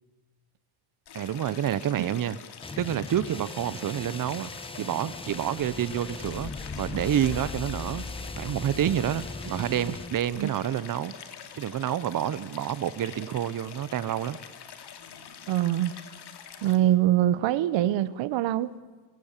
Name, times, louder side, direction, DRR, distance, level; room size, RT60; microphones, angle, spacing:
Stream, 1.1-16.8, left 8 dB, 60° left, 2.8 m, -46 dB
voice 1, 1.1-2.4 2.8-4.5 4.8-6.5 6.8-8.0 8.4-11.1 11.5-14.4, right 10 dB, 45° right, 17 dB, 1.0 m, -28 dB
sound 1, 2.6-10.2, left 3 dB, 10° left, 1.2 m, -40 dB
sound 2, 5.3-10.5, left 4 dB, 40° left, 2.7 m, -41 dB
voice 2, 15.5-15.9 16.6-18.7, right 13 dB, 80° right, 17 dB, 1.0 m, -24 dB
29.5 x 19.0 x 7.4 m, 1.4 s
cardioid pair, 110°, 44 cm